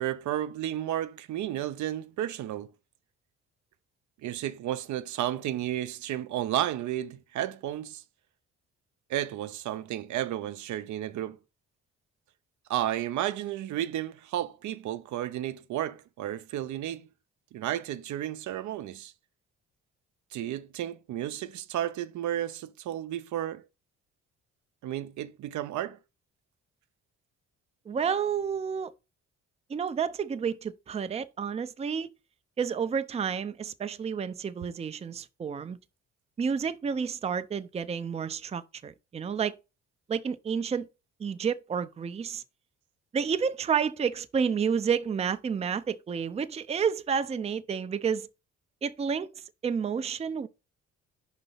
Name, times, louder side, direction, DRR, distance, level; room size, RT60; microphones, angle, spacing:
voice 1, 0.0-2.7 4.2-8.0 9.1-11.4 12.7-17.1 17.5-19.1 20.3-23.6 24.8-26.0, right 12 dB, 70° right, 0.6 m, -32 dB
voice 2, 27.9-28.9 29.7-32.1 32.6-35.8 36.4-39.6 40.1-40.9 41.2-42.4 43.1-48.3 48.8-49.3 49.6-50.5, right 6 dB, 20° right, 0.4 m, -30 dB
5.3 x 4.0 x 5.5 m
cardioid pair, 90°, 30 cm